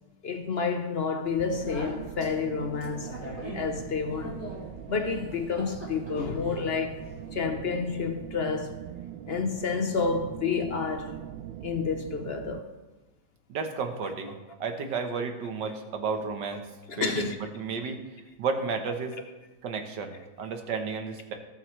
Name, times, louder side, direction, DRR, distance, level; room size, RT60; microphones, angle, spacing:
voice 1, 0.2-3.2 3.5-4.4 4.9-7.0 7.3-8.8 9.3-11.2 11.6-12.7 16.9-17.4, left 5 dB, 55° left, 0.6 m, -29 dB
Speech, 1.3-7.3, equal, 10° right, 3.8 m, -43 dB
sound 1, 1.4-12.6, right 11 dB, 85° right, 1.3 m, -41 dB
voice 2, 13.5-16.6 17.0-18.0 18.4-19.2 19.6-21.3, right 5 dB, 70° right, 1.7 m, -32 dB
20.5 x 7.6 x 3.2 m
omnidirectional pair, 2.0 m